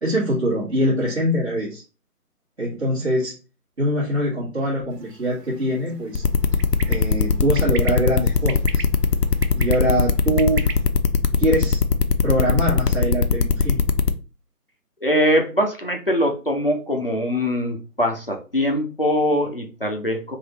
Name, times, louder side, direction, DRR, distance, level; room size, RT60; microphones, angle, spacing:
voice 1, 0.0-1.8 2.6-3.3 3.8-6.2 6.9-8.8 9.5-10.7 11.4-11.8 12.2-13.8, equal, 45° right, -9 dB, 1.9 m, -23 dB
sound 1, 4.9-10.8, right 5 dB, 85° right, 0.8 m, -39 dB
sound 2, 6.1-14.1, left 5 dB, 75° left, 0.6 m, -19 dB
voice 2, 15.0-20.4, equal, 35° left, 2 dB, 0.6 m, -22 dB
4.1 x 2.6 x 3.0 m, 0.33 s
figure-of-eight pair, 175°, 47 cm